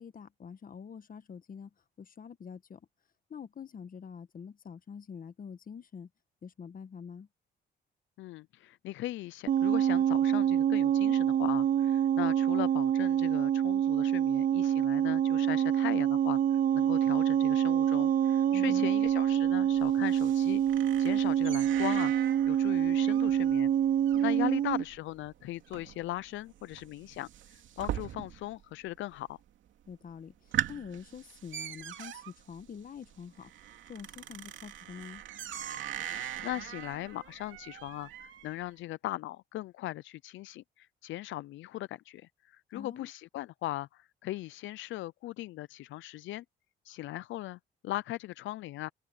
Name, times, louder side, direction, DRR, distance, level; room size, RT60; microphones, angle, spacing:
voice 1, 0.0-1.7 2.0-2.8 3.3-6.1 6.4-7.3 18.5-18.9 24.1-24.5 29.9-30.3 30.7-33.5 33.9-35.2 42.7-43.1, left 6 dB, 45° left, 1.4 m, -45 dB
voice 2, 8.2-23.7 24.2-29.4 36.1-46.4 46.8-48.9, left 15 dB, 75° left, 0.4 m, -39 dB
sound 1, 9.5-24.8, right 10 dB, 45° right, 0.4 m, -26 dB
sound 2, 19.1-28.6 28.9-29.5 29.9-30.0 30.3-38.6, right 11 dB, 75° right, 2.7 m, -41 dB
cardioid pair, 90°, 20 cm